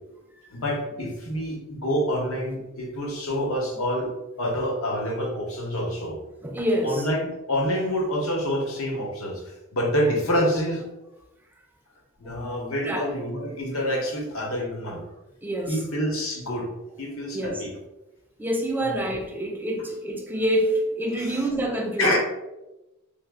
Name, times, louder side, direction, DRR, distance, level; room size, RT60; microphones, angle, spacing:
voice 1, 0.5-4.1 4.4-6.2 6.8-10.8 12.2-15.0 15.7-16.7 17.0-17.7 18.8-19.0 21.2-21.4 22.0-22.2, equal, 65° left, 0.8 m, -27 dB
voice 2, 6.4-7.1 12.2-13.1 13.4-13.5 15.4-15.8 17.3-17.7 18.4-22.2, right 1 dB, 10° right, 0.3 m, -27 dB
3.0 x 2.1 x 3.5 m
head